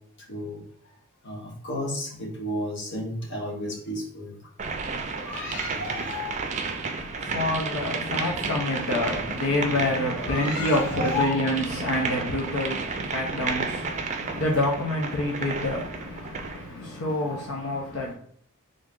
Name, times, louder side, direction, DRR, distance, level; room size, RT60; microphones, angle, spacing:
voice 1, 0.3-0.6 1.2-4.3 5.1-6.4 8.9-9.0 10.1-11.5 14.0-14.4 16.8-18.1, left 1 dB, 55° left, 1.2 m, -34 dB
sound 1, 4.6-16.7, right 4 dB, 35° right, 0.4 m, -32 dB
voice 2, 6.6-18.1, left 1 dB, 80° left, 0.7 m, -28 dB
3.7 x 2.6 x 3.6 m
head